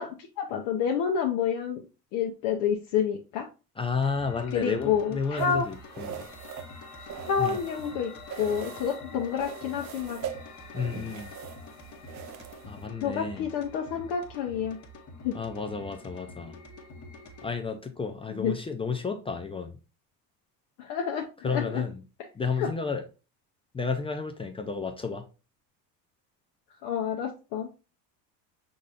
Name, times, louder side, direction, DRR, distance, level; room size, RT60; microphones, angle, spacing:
voice 1, 0.0-1.8 2.1-3.5 4.5-5.7 7.3-8.1 8.4-10.2 13.0-14.8 15.2-15.4 18.3-18.5 20.8-21.8 22.6-22.7 26.8-27.7, left 7 dB, 60° left, 0.8 m, -29 dB
voice 2, 3.8-6.3 7.4-7.6 10.7-11.3 12.7-13.4 15.3-16.5 17.4-19.7 21.4-21.9 22.3-23.1 23.7-25.3, left 5 dB, 15° left, 0.3 m, -32 dB
sound 1, 4.0-17.5, left 3 dB, 35° left, 1.1 m, -46 dB
sound 2, 5.4-8.0 8.3-9.0 9.4-12.9, right 9 dB, 35° right, 0.6 m, -41 dB
5.4 x 3.9 x 2.4 m
hypercardioid pair, 90°, 49 cm